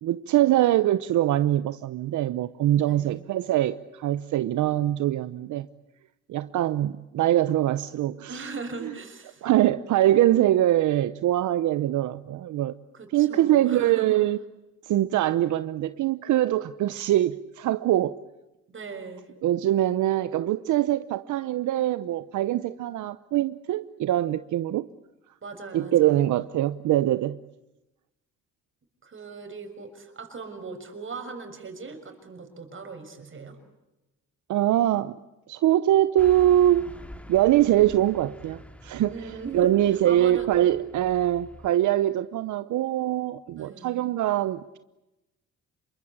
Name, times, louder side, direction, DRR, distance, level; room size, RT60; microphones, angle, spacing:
voice 1, 0.0-5.7 6.3-8.5 8.8-8.9 9.4-12.7 13.1-14.4 14.8-18.2 19.4-24.9 25.7-27.4 34.5-35.1 35.5-36.8 37.3-44.8, right 13 dB, 75° right, 13 dB, 0.9 m, -23 dB
voice 2, 2.8-3.2 8.3-9.4 12.9-14.2 18.7-19.3 25.4-26.3 29.0-33.6 39.1-40.7 43.5-44.0, right 4 dB, 40° right, 7 dB, 6.6 m, -39 dB
Car passing by / Truck, 36.2-41.7, equal, 5° left, 2.3 m, -45 dB
27.5 x 23.5 x 8.6 m, 0.99 s
cardioid pair, 90°, 30 cm